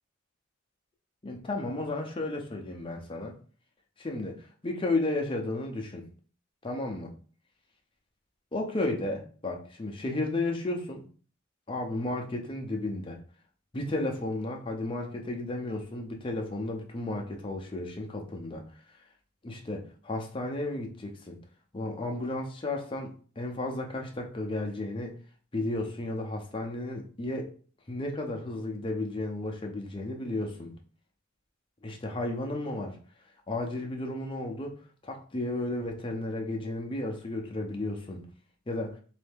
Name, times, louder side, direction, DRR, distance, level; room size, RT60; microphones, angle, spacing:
voice 1, 1.2-3.3 4.0-6.1 6.6-7.1 8.5-11.1 11.7-13.2 13.7-18.6 19.4-21.4 21.7-25.2 25.5-27.5 27.9-30.7 31.8-33.0 33.5-34.7 35.0-38.3 38.7-39.0, left 2 dB, 25° left, 2 dB, 0.6 m, -33 dB
3.2 x 2.7 x 3.4 m, 0.41 s
head